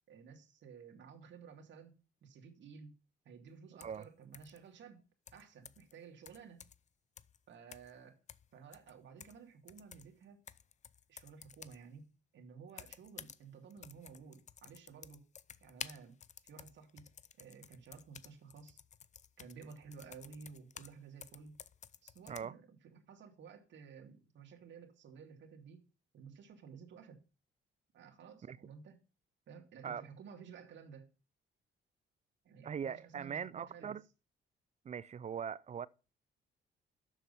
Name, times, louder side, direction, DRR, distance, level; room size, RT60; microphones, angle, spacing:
voice 1, 0.1-2.9 3.2-5.0 5.3-6.7 7.5-8.2 8.5-10.4 11.1-12.1 12.3-15.3 15.6-16.1 16.4-17.1 17.4-18.8 19.4-21.5 22.0-25.8 26.1-27.2 27.9-29.1 29.5-31.1 32.4-34.0, right 6 dB, 65° right, 2.3 m, -54 dB
sound 1, 3.8-4.1 4.3-4.6 5.3-5.9 6.3-6.9 7.2-7.4 7.7-8.0 8.3-9.4 9.7-11.8 12.7-13.4 13.7-21.0 21.2-22.4, left 8 dB, 35° left, 0.5 m, -53 dB
voice 2, 32.6-34.0 34.8-35.9, right 7 dB, 35° right, 0.5 m, -41 dB
7.4 x 6.8 x 5.5 m
cardioid pair, 90°, 20 cm